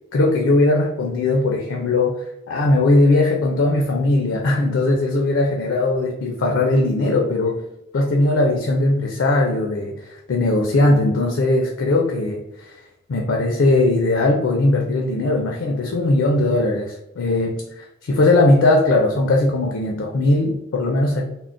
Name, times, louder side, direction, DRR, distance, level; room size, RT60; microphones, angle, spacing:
voice 1, 0.1-2.2 2.5-7.6 7.9-12.7 13.1-21.3, left 2 dB, 70° left, 1 dB, 0.4 m, -19 dB
3.6 x 2.0 x 2.4 m, 0.90 s
head